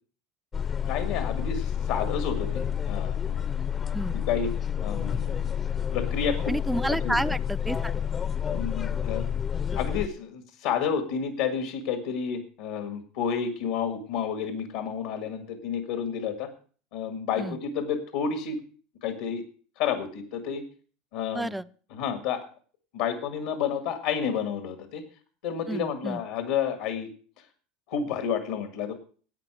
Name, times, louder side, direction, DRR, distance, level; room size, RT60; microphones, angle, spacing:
sound 1, 0.5-10.1, left 8 dB, 25° left, 0.7 m, -29 dB
voice 1, 0.8-3.4 4.3-4.5 4.8-5.5 5.9-6.5 7.0-7.1 8.5-9.2 9.7-16.5 16.9-18.6 19.0-19.4 19.8-20.6 21.1-21.5 21.9-22.4 22.9-25.0 25.4-27.1 27.9-28.9, left 7 dB, 80° left, 8 dB, 1.9 m, -30 dB
voice 2, 6.5-7.9 17.4-17.6 21.3-21.7 25.7-26.2, right 1 dB, 5° right, 14 dB, 0.4 m, -30 dB
12.0 x 8.4 x 6.2 m, 0.42 s
supercardioid pair, 110°, 0 cm